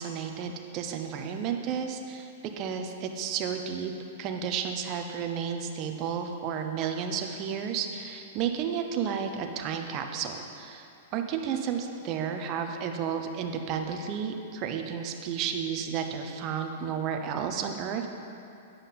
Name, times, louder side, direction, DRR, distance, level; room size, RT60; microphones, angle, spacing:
voice 1, 0.0-2.3 2.6-3.9 4.2-18.1, right 7 dB, 35° right, 5 dB, 0.7 m, -32 dB
9.5 x 5.5 x 5.8 m, 2.7 s
hypercardioid pair, 150°, 0 cm